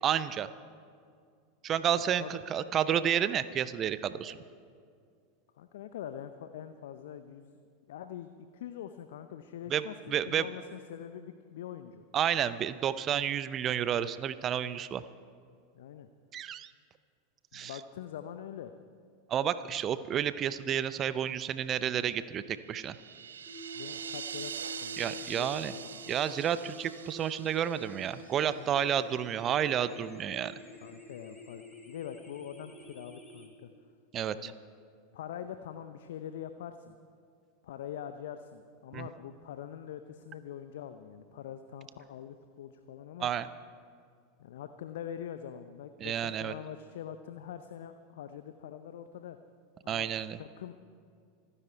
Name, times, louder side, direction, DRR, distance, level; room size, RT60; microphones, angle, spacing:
voice 1, 0.0-0.5 1.6-4.4 9.7-9.8 10.1-10.5 12.1-15.0 16.3-16.7 17.5-17.7 19.3-23.0 25.0-25.7 26.1-30.5 34.1-34.5 38.9-39.1 43.2-43.5 46.0-46.5 49.9-50.4, right 9 dB, 35° right, 15 dB, 0.6 m, -30 dB
voice 2, 1.9-2.4 5.6-7.6 7.9-12.0 15.7-16.1 17.5-18.7 23.7-25.5 25.7-26.0 28.5-28.7 30.8-33.7 34.3-34.5 35.1-37.0 37.6-43.3 44.4-49.4 49.8-50.1 50.4-50.7, left 9 dB, 65° left, 9 dB, 0.6 m, -44 dB
sound 1, 22.6-28.8, right 7 dB, 75° right, 0.5 m, -43 dB
sound 2, 23.5-33.5, left 1 dB, 10° left, 2.9 m, -48 dB
26.5 x 10.0 x 4.5 m, 2.2 s
figure-of-eight pair, 85°, 0 cm